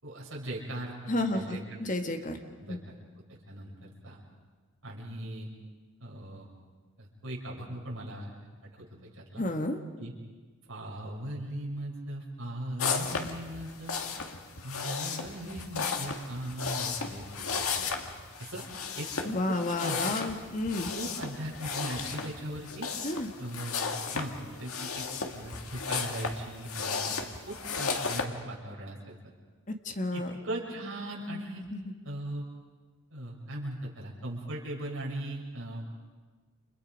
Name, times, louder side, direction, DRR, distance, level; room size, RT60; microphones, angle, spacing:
voice 1, 0.0-0.9 1.2-1.6 2.6-2.9 3.3-4.2 4.8-5.5 6.0-6.5 7.0-8.3 8.7-9.4 10.0-10.1 10.7-14.0 14.6-17.7 18.4-18.6 18.9-20.0 20.9-22.9 23.4-25.1 25.3-27.1 27.5-29.1 30.1-31.6 32.0-32.4 33.1-35.9, right 1 dB, 70° right, -3 dB, 6.5 m, -39 dB
voice 2, 1.1-2.4 2.7-2.8 9.4-9.8 19.2-20.9 23.0-23.3 29.7-30.3 31.7-31.8, left 2 dB, 35° left, 4 dB, 1.7 m, -31 dB
sound 1, 12.8-28.3, left 5 dB, 85° left, 2.0 m, -35 dB
30.0 x 28.5 x 5.3 m, 1.4 s
head